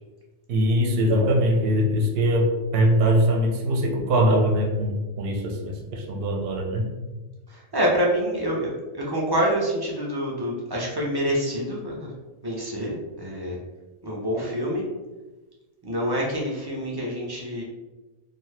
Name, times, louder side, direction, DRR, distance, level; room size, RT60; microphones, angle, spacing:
voice 1, 0.5-6.9, equal, 65° right, 2 dB, 0.7 m, -22 dB
voice 2, 7.5-12.1 12.4-13.6 14.0-14.8 15.8-17.6, equal, 40° right, -3 dB, 0.3 m, -26 dB
2.7 x 2.3 x 3.1 m, 1.2 s
omnidirectional pair, 1.1 m